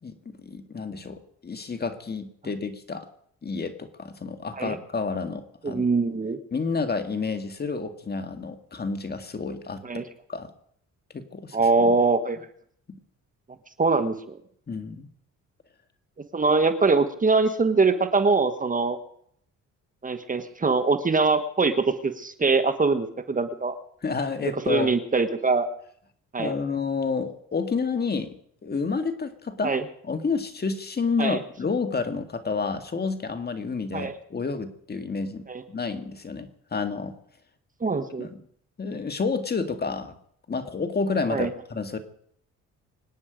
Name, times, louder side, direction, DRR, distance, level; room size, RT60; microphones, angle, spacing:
voice 1, 0.0-3.1 3.4-5.8 6.5-9.8 10.3-10.5 11.1-12.0 14.7-15.1 24.0-25.0 26.4-28.4 28.6-29.7 30.0-37.1 38.2-38.3 38.8-40.1 40.5-42.0, left 4 dB, 35° left, 8 dB, 1.9 m, -30 dB
voice 2, 5.6-6.4 9.8-10.0 11.5-12.4 13.8-14.4 16.3-19.0 20.0-23.8 24.4-25.7 26.3-26.5 29.6-29.8 31.2-31.4 33.9-34.2 35.5-35.6 37.8-38.3 41.3-41.5, right 4 dB, 25° right, 10 dB, 1.4 m, -23 dB
25.0 x 9.8 x 5.1 m, 0.66 s
cardioid pair, 90°, 30 cm